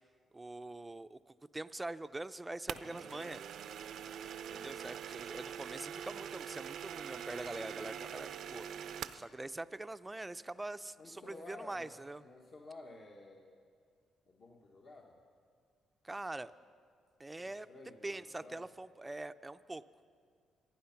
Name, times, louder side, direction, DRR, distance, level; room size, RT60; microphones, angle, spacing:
voice 1, 0.3-3.4 4.5-12.2 16.0-16.5 17.2-17.7 18.0-19.8, right 2 dB, 15° right, 12 dB, 0.5 m, -44 dB
sound 1, 2.7-9.3, right 8 dB, 70° right, 0.5 m, -44 dB
voice 2, 4.4-4.8 11.0-13.6 14.3-15.2 17.4-18.7, left 2 dB, 50° left, 0 dB, 1.4 m, -53 dB
26.0 x 9.3 x 5.8 m, 2.1 s
cardioid pair, 90°, 0 cm